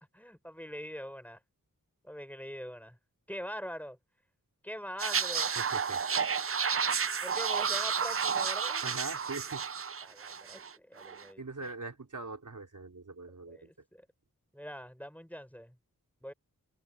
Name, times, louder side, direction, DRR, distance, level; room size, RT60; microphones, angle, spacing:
voice 1, 0.1-1.4 2.0-3.0 3.3-4.0 4.6-5.6 7.2-8.8 10.0-11.4 13.5-14.1 14.5-15.8 16.2-16.3, equal, 5° left, 5.7 m, -43 dB
sound 1, 5.0-10.7 11.0-11.2, right 6 dB, 40° right, 0.6 m, -31 dB
voice 2, 5.5-6.0 8.8-9.7 11.4-13.7, right 3 dB, 60° right, 5.0 m, -42 dB
wide cardioid pair, 60°, 34 cm